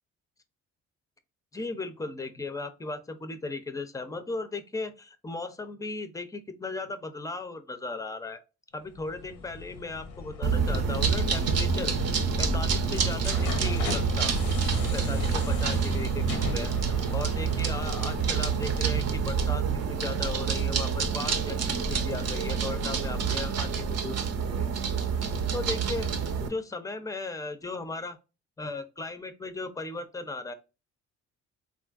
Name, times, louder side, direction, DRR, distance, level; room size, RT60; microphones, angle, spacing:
voice 1, 1.5-8.4 8.7-12.0 12.4-14.4 14.9-24.7 25.5-26.1 26.4-28.2 28.6-30.5, left 3 dB, 10° left, 9 dB, 0.4 m, -37 dB
sound 1, 8.8-19.6, left 6 dB, 85° left, 0.6 m, -41 dB
sound 2, 10.4-26.5, right 5 dB, 55° right, 0.6 m, -27 dB
3.7 x 2.4 x 2.3 m, 0.29 s
cardioid pair, 90°, 30 cm